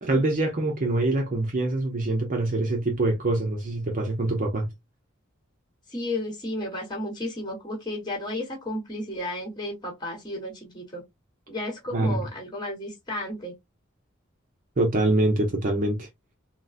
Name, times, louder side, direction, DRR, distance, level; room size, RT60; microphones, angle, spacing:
voice 1, 0.0-4.7 11.9-12.2 14.8-16.1, right 2 dB, 40° right, 0.6 m, -24 dB
voice 2, 5.9-11.0 11.5-13.5, left 1 dB, 20° left, 1.2 m, -33 dB
3.7 x 2.1 x 2.4 m
head